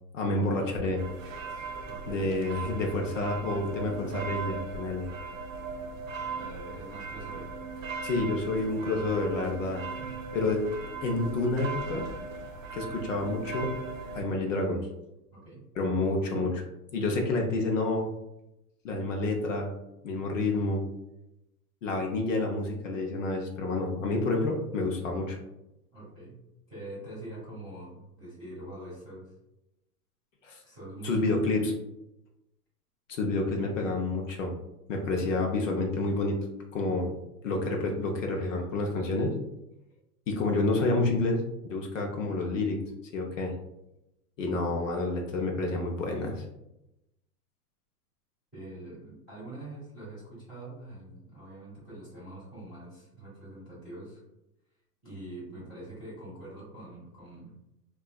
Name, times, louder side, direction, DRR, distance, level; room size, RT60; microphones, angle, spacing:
voice 1, 0.1-1.0 2.1-5.1 8.0-9.8 10.3-10.6 11.0-12.1 12.7-13.7 14.1-14.8 15.8-16.6 16.9-18.1 18.8-19.7 20.0-20.8 21.8-25.4 30.4-30.6 31.0-31.7 33.1-34.5 34.9-36.4 36.7-37.1 37.4-39.4 40.3-42.8 43.1-43.5 44.4-46.4, left 2 dB, 55° left, 1 dB, 0.6 m, -29 dB
sound 1, 1.0-14.2, right 4 dB, 55° right, 0.5 m, -38 dB
voice 2, 1.8-2.3 6.3-7.5 10.0-10.2 15.3-15.6 25.9-29.3 30.6-31.4 48.5-54.2 55.0-57.5, right 1 dB, ahead, -22 dB, 0.5 m, -44 dB
3.8 x 2.3 x 2.2 m, 0.91 s
hypercardioid pair, 175°, 48 cm